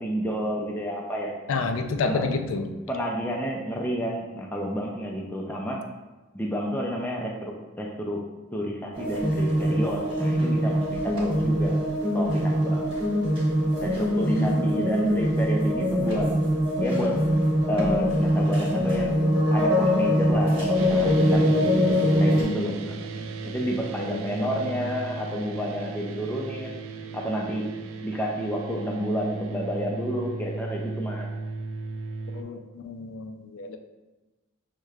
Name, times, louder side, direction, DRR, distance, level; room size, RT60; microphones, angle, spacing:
voice 1, 0.0-1.4 2.0-2.3 2.9-5.8 6.3-8.2 8.5-11.8 12.1-12.9 13.8-16.3 16.8-17.1 17.7-19.2 19.5-21.5 22.2-23.1 23.4-26.8 27.1-27.7 28.0-31.3, equal, 10° left, -1 dB, 0.3 m, -30 dB
voice 2, 1.5-2.7 14.2-14.9 22.3-22.8 24.0-24.7 32.3-33.8, left 4 dB, 85° left, 6 dB, 0.4 m, -31 dB
sound 1, 8.9-22.4, equal, 25° right, 1.3 m, -23 dB
sound 2, 20.7-32.4, right 4 dB, 85° right, 0.3 m, -36 dB
6.1 x 2.1 x 2.3 m, 1.1 s
head